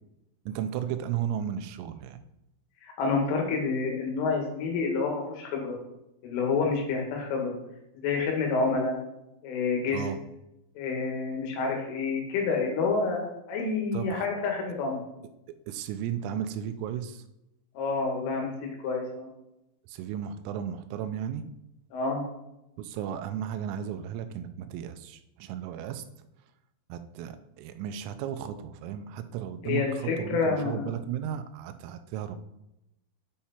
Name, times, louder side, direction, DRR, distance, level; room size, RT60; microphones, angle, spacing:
voice 1, 0.5-2.2 9.9-10.2 13.9-14.3 15.7-17.2 19.9-21.4 22.8-26.0 26.9-32.4, right 9 dB, 90° right, 9 dB, 3.3 m, -34 dB
voice 2, 2.8-5.8 6.2-7.6 8.0-9.0 9.4-10.0 10.8-15.0 17.8-19.3 21.9-22.2 29.6-30.9, left 4 dB, 75° left, 0 dB, 4.2 m, -28 dB
8.7 x 5.7 x 4.3 m, 0.88 s
omnidirectional pair, 5.8 m